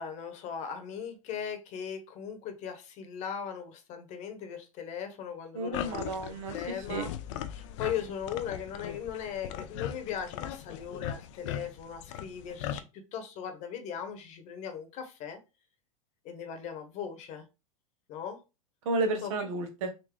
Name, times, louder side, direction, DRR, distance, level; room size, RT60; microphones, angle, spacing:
voice 1, 0.0-6.2 6.5-7.1 7.5-12.8 13.1-15.4 16.2-17.4 18.1-18.4 19.2-19.3, left 8 dB, 40° left, 1.0 m, -38 dB
voice 2, 5.5-7.1 18.8-19.9, right 3 dB, 65° right, 1.0 m, -32 dB
sound 1, 5.7-12.8, left 10 dB, 60° left, 0.4 m, -39 dB
3.8 x 2.6 x 3.2 m
hypercardioid pair, 115°, 18 cm